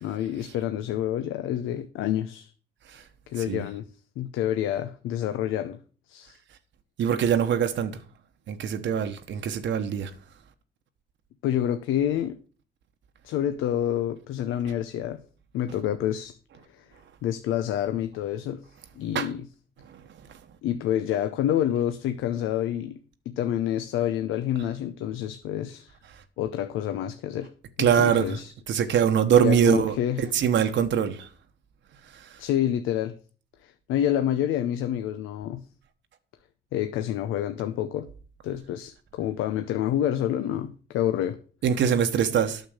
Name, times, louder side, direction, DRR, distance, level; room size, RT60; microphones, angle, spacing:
voice 1, 0.0-2.5 3.3-3.9 4.2-5.8 6.1-6.4 11.4-12.4 13.2-15.2 15.5-16.3 16.7-16.8 17.2-18.6 19.0-19.5 20.6-23.0 23.3-25.9 26.4-27.5 27.8-28.5 29.4-30.3 32.4-33.2 33.6-35.6 36.7-38.1 38.4-41.4, left 11 dB, 90° left, 0.7 m, -28 dB
voice 2, 7.0-8.0 8.5-10.1 19.1-19.3 27.8-28.4 28.7-31.3 41.6-42.6, right 8 dB, 70° right, 1.1 m, -23 dB
9.2 x 6.6 x 6.5 m
cardioid pair, 90°, 20 cm